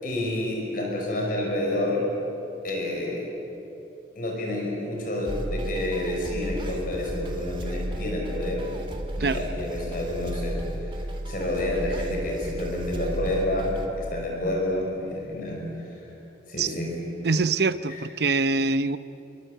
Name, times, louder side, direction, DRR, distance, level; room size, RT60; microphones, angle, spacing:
voice 1, 0.0-2.0 2.6-3.2 4.2-8.7 9.2-15.6 15.9-16.1 16.5-16.9 17.9-18.0, left 1 dB, 50° left, -1 dB, 5.5 m, -29 dB
sound 1, 5.3-13.9, right 1 dB, 25° right, 2.4 m, -33 dB
voice 2, 17.2-19.0, right 3 dB, 60° right, 13 dB, 0.8 m, -24 dB
27.0 x 24.0 x 8.0 m, 3.0 s
head